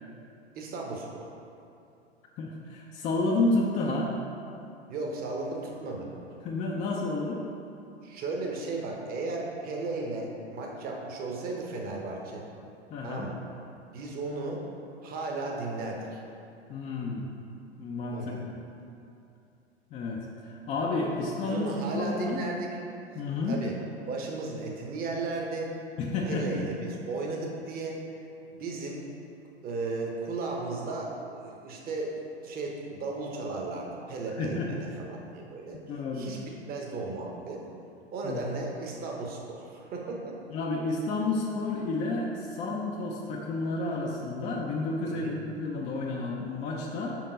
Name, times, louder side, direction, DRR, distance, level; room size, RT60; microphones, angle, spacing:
voice 1, 0.5-1.2 4.9-6.1 8.0-12.5 13.0-13.4 13.9-14.6 15.0-16.2 18.1-18.4 21.4-22.7 23.5-23.7 24.1-25.7 26.2-28.0 28.5-29.0 29.6-35.8 36.1-36.4 36.6-37.6 38.1-40.3 45.1-45.4, right 3 dB, 25° right, -1 dB, 1.0 m, -35 dB
voice 2, 2.4-4.1 6.4-7.4 12.9-13.3 16.7-17.3 17.8-18.5 19.9-22.4 23.1-23.6 26.0-26.6 34.4-34.7 35.9-36.3 38.2-38.4 40.5-47.2, left 2 dB, 20° left, -2 dB, 0.5 m, -30 dB
5.3 x 4.6 x 5.1 m, 2.7 s
figure-of-eight pair, 95°, 33 cm